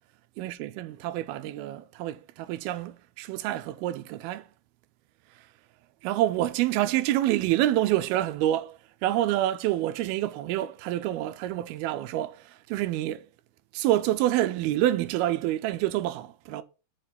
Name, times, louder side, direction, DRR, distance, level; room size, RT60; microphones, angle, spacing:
voice 1, 0.4-4.5 6.0-13.3 13.7-16.6, right 14 dB, 80° right, 2.3 m, -27 dB
6.8 x 5.4 x 5.8 m
omnidirectional pair, 4.7 m